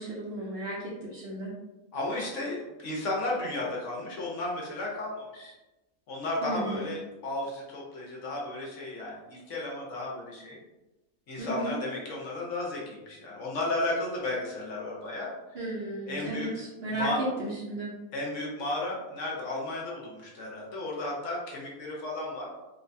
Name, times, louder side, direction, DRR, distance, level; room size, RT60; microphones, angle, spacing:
voice 1, 0.0-1.5 6.4-6.9 11.4-11.8 15.5-17.9, right 1 dB, 55° right, -5 dB, 0.7 m, -34 dB
voice 2, 1.9-5.5 6.1-10.6 11.3-15.3 16.1-16.5 17.0-17.2 18.1-22.4, left 2 dB, 65° left, -3 dB, 1.0 m, -33 dB
3.2 x 2.2 x 2.5 m, 1.0 s
omnidirectional pair, 1.5 m